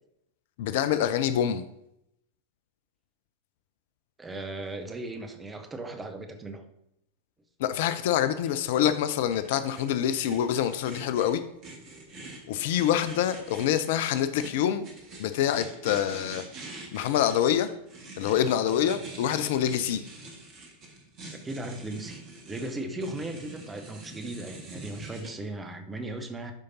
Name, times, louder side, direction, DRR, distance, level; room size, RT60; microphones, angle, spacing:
voice 1, 0.6-1.6 7.6-11.4 12.5-14.8 15.2-16.4 16.9-17.7 18.2-20.0, left 10 dB, 50° left, 12 dB, 0.4 m, -26 dB
voice 2, 4.2-6.6 21.4-26.5, right 2 dB, 15° right, 6 dB, 0.9 m, -37 dB
sound 1, 8.1-25.3, right 2 dB, 35° right, 1.8 m, -45 dB
12.0 x 5.1 x 2.8 m, 0.81 s
figure-of-eight pair, 90°, 0 cm